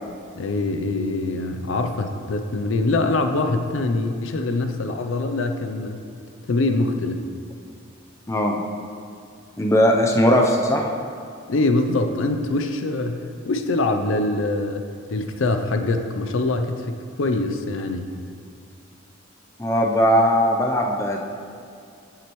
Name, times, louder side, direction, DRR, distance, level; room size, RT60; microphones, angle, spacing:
voice 1, 0.4-6.0 6.5-7.3 11.5-14.8 15.1-18.1, left 2 dB, 70° left, 6 dB, 0.5 m, -24 dB
voice 2, 8.3-8.6 9.6-10.8 19.6-21.2, equal, 15° left, 0 dB, 0.5 m, -19 dB
8.3 x 7.6 x 3.1 m, 2.4 s
head